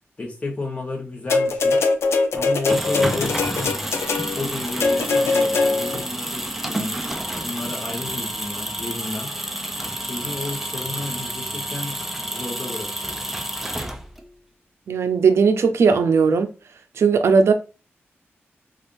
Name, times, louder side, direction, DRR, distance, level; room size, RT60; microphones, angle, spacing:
voice 1, 0.2-1.8 2.3-3.8 4.3-7.0 7.4-9.3 10.0-13.2, left 2 dB, 30° left, 0.9 m, -32 dB
sound 1, 1.3-6.0 7.0-7.1, left 3 dB, 80° left, 0.4 m, -22 dB
sound 2, 2.5-14.3, right 1 dB, 5° right, 0.4 m, -29 dB
voice 2, 14.9-16.5 17.0-17.5, right 5 dB, 80° right, 0.5 m, -17 dB
3.4 x 2.4 x 2.5 m
wide cardioid pair, 130°, 4 cm